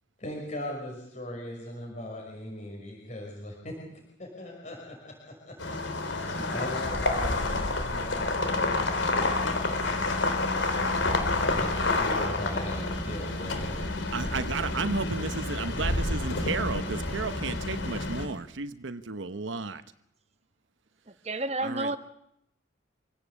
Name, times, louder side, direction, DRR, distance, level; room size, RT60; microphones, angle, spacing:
voice 1, 0.2-3.7 4.2-5.1 5.5-5.6 6.1-11.1 11.6-13.8, left 1 dB, 40° left, -1 dB, 5.7 m, -39 dB
sound 1, 5.6-18.3, left 2 dB, 75° left, 3.7 m, -29 dB
voice 2, 14.1-19.8 21.6-22.0, right 4 dB, 80° right, 11 dB, 1.0 m, -33 dB
voice 3, 21.2-22.0, right 2 dB, 35° right, 11 dB, 1.1 m, -30 dB
26.5 x 17.0 x 8.3 m, 0.76 s
head